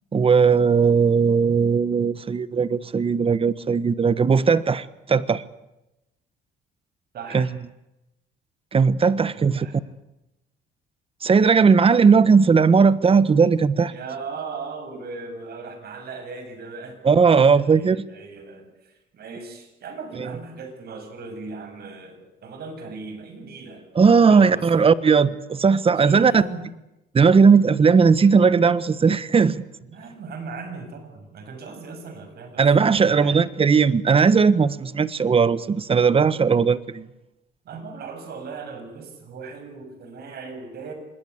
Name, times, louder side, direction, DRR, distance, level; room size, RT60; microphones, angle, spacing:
voice 1, 0.1-5.4 7.3-7.5 8.7-9.7 11.2-13.9 17.0-18.0 23.9-26.4 27.1-29.6 32.6-37.1, right 5 dB, 30° right, 16 dB, 1.3 m, -17 dB
voice 2, 7.1-7.5 9.4-9.8 13.9-17.0 17.2-23.8 24.1-24.9 26.0-26.6 29.9-33.4 37.6-40.9, right 4 dB, 60° right, 6 dB, 7.5 m, -38 dB
26.0 x 21.0 x 8.3 m, 0.92 s
cardioid pair, 95°, 18 cm